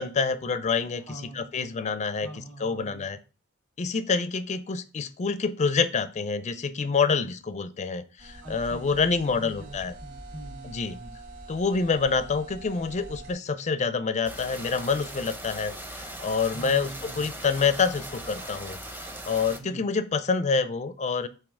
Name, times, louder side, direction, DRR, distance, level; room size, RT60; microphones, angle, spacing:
voice 1, 0.0-1.0 1.3-3.2 3.8-10.0 10.6-11.0 11.5-18.8 19.3-21.3, left 5 dB, 35° left, 12 dB, 0.4 m, -27 dB
voice 2, 1.0-1.5 2.2-3.1 8.4-11.2 16.5-17.3 19.6-19.8, right 1 dB, 80° right, -5 dB, 3.0 m, -43 dB
sound 1, 8.2-13.3, right 2 dB, 50° right, 2.2 m, -44 dB
sound 2, 14.3-19.6, right 1 dB, 10° right, 0.7 m, -39 dB
7.1 x 2.8 x 4.7 m, 0.34 s
head